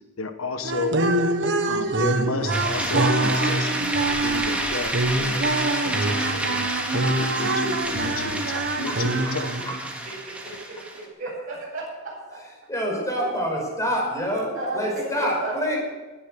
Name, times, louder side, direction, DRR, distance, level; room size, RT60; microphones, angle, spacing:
voice 1, 0.2-1.0 1.7-3.9 4.2-5.4 5.8-8.4 8.8-9.5, left 3 dB, 85° left, 8 dB, 1.4 m, -32 dB
sound 1, 0.6-9.9, right 2 dB, 60° right, 1.4 m, -25 dB
sound 2, 2.5-11.0, right 1 dB, 5° right, 2.3 m, -29 dB
voice 2, 8.3-9.8 12.7-15.8, equal, 15° left, -1 dB, 5.4 m, -28 dB
voice 3, 10.4-12.4 14.5-15.8, right 2 dB, 45° right, -7 dB, 7.2 m, -33 dB
20.0 x 10.0 x 6.6 m, 1.3 s
head